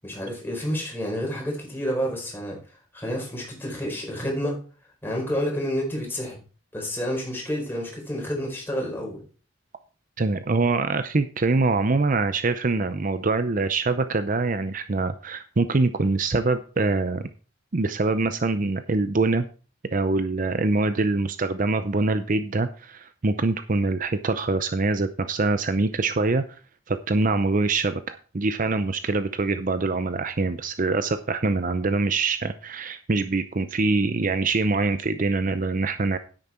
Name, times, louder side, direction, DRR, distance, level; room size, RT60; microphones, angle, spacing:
voice 1, 0.0-2.6 2.9-4.6 5.0-6.4 6.7-9.2, equal, 10° left, -1 dB, 4.7 m, -29 dB
voice 2, 10.2-17.3 17.7-19.5 19.9-26.4 26.9-36.2, right 3 dB, 45° right, 11 dB, 0.6 m, -24 dB
9.9 x 9.1 x 4.4 m, 0.37 s
head